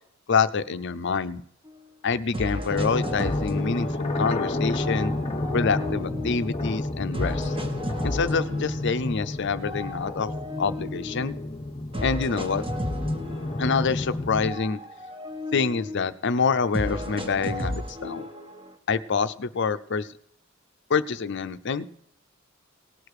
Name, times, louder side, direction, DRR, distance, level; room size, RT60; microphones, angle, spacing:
voice 1, 0.3-1.4 2.0-5.1 5.5-7.6 8.0-11.4 12.0-12.6 13.6-14.8 15.5-18.3 18.9-20.1 20.9-21.9, left 5 dB, 60° left, 11 dB, 0.6 m, -26 dB
sound 1, 1.7-1.8 2.3-4.4 4.7-6.6 7.1-9.1 9.6-11.3 11.9-14.1 14.4-16.1 16.7-18.7, left 1 dB, 25° right, 1.3 m, -34 dB
sound 2, 2.7-14.5, left 2 dB, 30° left, 0.8 m, -30 dB
18.5 x 6.7 x 4.8 m, 0.69 s
head